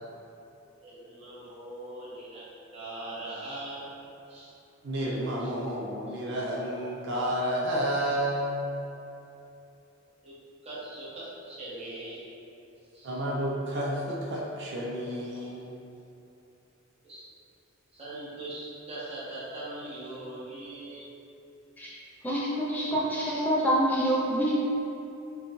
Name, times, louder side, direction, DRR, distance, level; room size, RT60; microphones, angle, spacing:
voice 1, 0.8-3.9 4.3-4.5 5.4-5.5 6.1-6.2 10.2-10.4 10.6-12.2 12.9-13.2 17.0-17.2 17.9-21.1, right 2 dB, 30° right, -9 dB, 1.1 m, -41 dB
voice 2, 4.8-8.6 13.0-15.7, equal, 60° right, -4 dB, 0.5 m, -30 dB
voice 3, 22.2-24.5, right 1 dB, 10° left, -6 dB, 0.4 m, -26 dB
5.3 x 2.2 x 3.0 m, 2.8 s
head